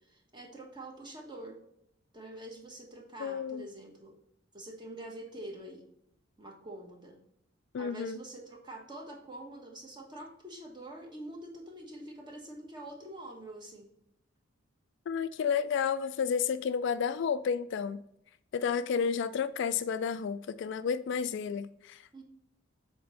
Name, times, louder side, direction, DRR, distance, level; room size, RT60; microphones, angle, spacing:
voice 1, 0.1-1.6 2.1-4.1 4.5-5.9 6.4-7.2 7.8-13.9 22.1-22.2, right 1 dB, 25° right, 1.3 m, -45 dB
voice 2, 3.2-3.7 7.7-8.2 15.1-18.0 18.5-22.2, left 6 dB, 60° left, 0.3 m, -31 dB
6.8 x 4.2 x 4.0 m
head